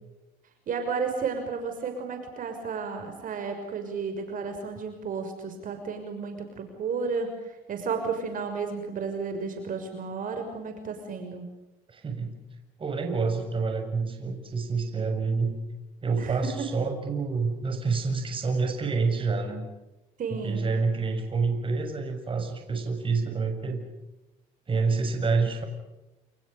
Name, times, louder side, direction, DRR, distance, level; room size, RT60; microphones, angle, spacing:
voice 1, 0.7-11.5 16.2-16.7 20.2-20.6, right 5 dB, 55° right, 6 dB, 6.1 m, -32 dB
voice 2, 11.9-12.3 12.8-15.5 16.0-19.7 20.3-23.8 24.7-25.7, right 4 dB, 30° right, 5 dB, 7.0 m, -28 dB
29.0 x 29.0 x 5.4 m, 1.0 s
cardioid pair, 110°, 17 cm